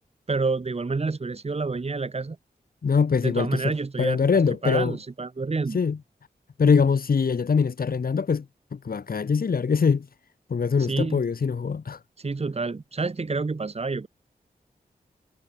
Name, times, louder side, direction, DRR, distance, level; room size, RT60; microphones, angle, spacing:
voice 1, 0.3-2.4 3.2-4.2 4.6-5.8 10.9-11.2 12.2-14.1, right 3 dB, 40° right, 1.6 m, -28 dB
voice 2, 2.8-3.7 4.0-5.0 5.7-6.0 6.6-8.5 8.7-10.1 10.5-12.0, left 5 dB, 65° left, 2.0 m, -23 dB
cardioid pair, 55°, 16 cm